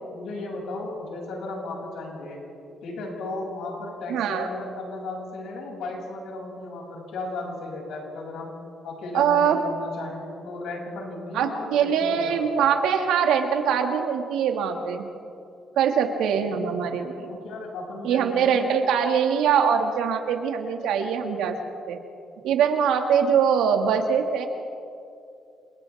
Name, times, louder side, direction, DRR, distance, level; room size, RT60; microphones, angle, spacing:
voice 1, 0.1-2.4 2.8-8.5 8.8-12.4 17.2-18.7, left 2 dB, 80° left, -1 dB, 7.1 m, -35 dB
voice 2, 4.1-4.5 9.1-9.6 11.3-15.0 15.8-17.3 18.0-21.6 21.9-22.0 22.4-24.5, right 7 dB, 90° right, 4 dB, 2.1 m, -23 dB
29.0 x 28.0 x 3.6 m, 2.5 s
cardioid pair, 90°, 0 cm